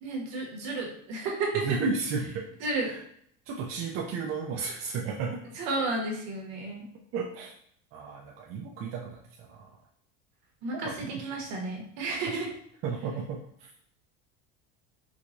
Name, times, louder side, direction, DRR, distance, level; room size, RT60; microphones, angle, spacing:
voice 1, 0.0-1.8 2.6-2.9 5.5-6.8 10.6-10.9 11.2-12.5, right 3 dB, 60° right, -1 dB, 1.2 m, -32 dB
voice 2, 1.5-2.4 2.8-3.0 3.5-5.4 7.1-7.5 7.9-9.7 10.7-11.3 12.3-12.4 12.8-13.4, right 5 dB, 45° right, -1 dB, 0.5 m, -33 dB
4.6 x 2.2 x 2.5 m, 0.69 s
cardioid pair, 145°, 30 cm